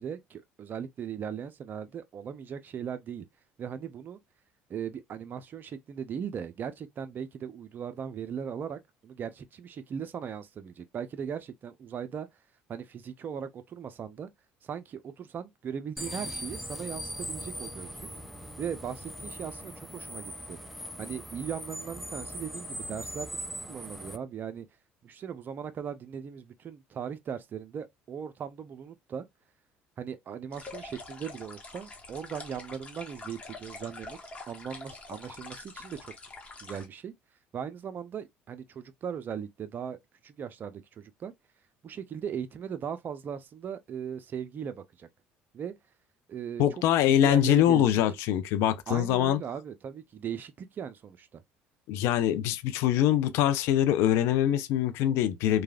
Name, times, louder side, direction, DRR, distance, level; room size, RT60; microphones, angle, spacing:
voice 1, 0.0-3.3 3.6-4.2 4.7-12.3 12.7-14.3 14.6-18.1 18.6-20.6 21.0-23.3 23.7-24.7 25.0-29.2 30.0-34.2 34.5-36.1 36.6-37.1 37.5-40.0 40.2-41.3 41.8-45.1 45.5-45.7 46.3-46.6 47.1-48.0 48.9-51.4, right 7 dB, 45° right, 0.5 m, -38 dB
sound 1, 16.0-24.2, equal, ahead, 0.5 m, -40 dB
sound 2, 30.5-36.9, left 3 dB, 25° left, 1.1 m, -45 dB
voice 2, 46.6-49.4 51.9-55.6, left 11 dB, 70° left, 0.4 m, -24 dB
3.1 x 2.3 x 2.3 m
supercardioid pair, 75°, 5 cm